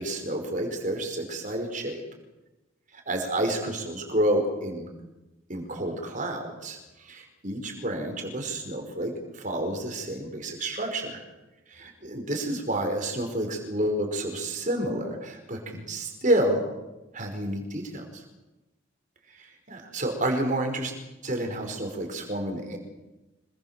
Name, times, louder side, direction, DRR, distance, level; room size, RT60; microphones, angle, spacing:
voice 1, 0.0-2.0 2.9-4.9 5.5-11.2 11.7-16.7 17.1-18.2 19.3-20.9 21.2-22.8, right 1 dB, 40° right, 4 dB, 5.4 m, -29 dB
26.5 x 21.5 x 7.7 m, 1.0 s
head